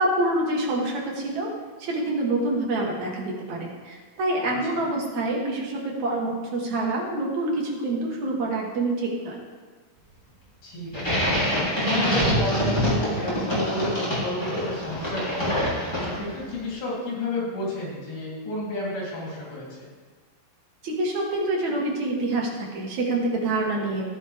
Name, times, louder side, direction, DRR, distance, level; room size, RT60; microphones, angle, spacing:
voice 1, 0.0-1.5 1.8-9.4 20.8-24.2, right 2 dB, 55° right, -1 dB, 2.6 m, -26 dB
voice 2, 10.6-11.3 11.8-15.5 16.0-19.9, left 2 dB, 80° left, -5 dB, 5.3 m, -31 dB
sound 1, 10.9-16.4, equal, 5° left, 2.8 m, -25 dB
15.0 x 9.3 x 3.5 m, 1.4 s
omnidirectional pair, 4.2 m